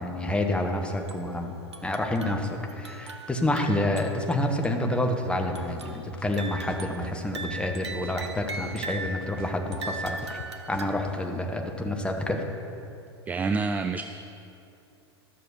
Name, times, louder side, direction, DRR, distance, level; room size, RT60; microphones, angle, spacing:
voice 1, 0.0-1.5 1.8-10.4 10.7-12.4, left 1 dB, 5° left, 3 dB, 1.2 m, -28 dB
sound 1, 0.9-1.3 1.7-4.3 4.6-4.7 5.5-6.0 6.3-9.2 9.7-11.2, right 3 dB, 75° right, 0.9 m, -39 dB
sound 2, 5.7-5.8 6.2-7.1 7.5-8.6 8.9-11.2, left 8 dB, 55° left, 0.6 m, -43 dB
voice 2, 13.3-14.0, right 4 dB, 10° right, 8 dB, 0.3 m, -27 dB
13.0 x 6.6 x 6.8 m, 2.7 s
figure-of-eight pair, 90°, 14 cm